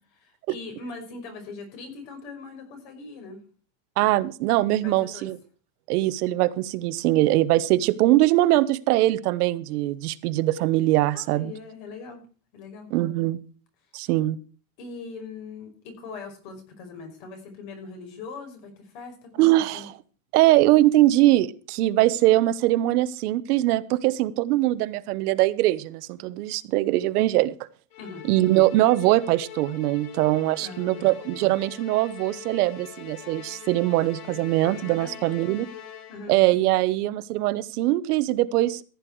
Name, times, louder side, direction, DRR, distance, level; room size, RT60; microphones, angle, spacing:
voice 1, 0.2-3.4 4.7-5.3 11.1-12.3 12.5-12.9 14.8-19.5 19.7-19.9 28.0-28.3 30.6-31.1 34.6-35.2 36.1-36.3, left 4 dB, 55° left, 5 dB, 5.6 m, -41 dB
voice 2, 4.0-5.4 5.9-11.5 12.9-13.4 13.9-14.4 19.4-19.9 20.3-27.5 28.2-35.7 36.3-38.8, right 16 dB, 75° right, 13 dB, 1.1 m, -22 dB
Musical instrument, 27.9-36.4, left 10 dB, 70° left, 2.5 m, -43 dB
15.0 x 9.8 x 4.7 m, 0.39 s
supercardioid pair, 165°, 45 cm